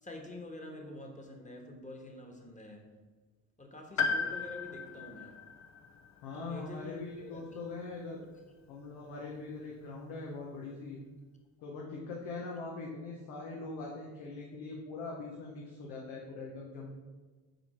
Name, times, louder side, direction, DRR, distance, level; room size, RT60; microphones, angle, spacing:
voice 1, 0.0-2.9 3.6-5.4 6.3-7.6 11.8-12.1, left 1 dB, 15° left, 2 dB, 1.4 m, -47 dB
Piano, 4.0-8.1 9.4-9.5, left 5 dB, 40° left, 0.7 m, -37 dB
voice 2, 6.2-8.2 8.7-11.0 11.6-16.9, left 3 dB, 75° left, -2 dB, 1.0 m, -42 dB
5.4 x 4.4 x 4.3 m, 1.3 s
hypercardioid pair, 55°, 46 cm